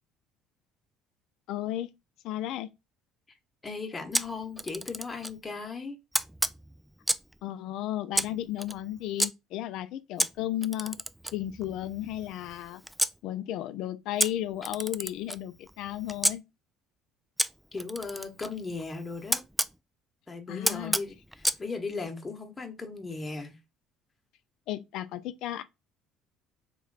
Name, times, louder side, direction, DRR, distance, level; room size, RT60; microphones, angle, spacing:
voice 1, 1.5-1.9 2.2-2.7 7.4-11.0 11.3-12.8 13.2-16.4 20.5-21.0 24.7-25.6, left 13 dB, 60° left, 0.4 m, -34 dB
voice 2, 3.6-6.0 17.7-19.4 20.3-23.6, left 4 dB, 25° left, 1.1 m, -37 dB
Camera, 4.1-5.4 6.1-7.4 8.1-9.3 10.2-13.2 14.2-16.4 17.4-19.7 20.6-21.6, right 1 dB, 5° right, 0.3 m, -31 dB
3.1 x 3.0 x 3.9 m
hypercardioid pair, 55°, 0 cm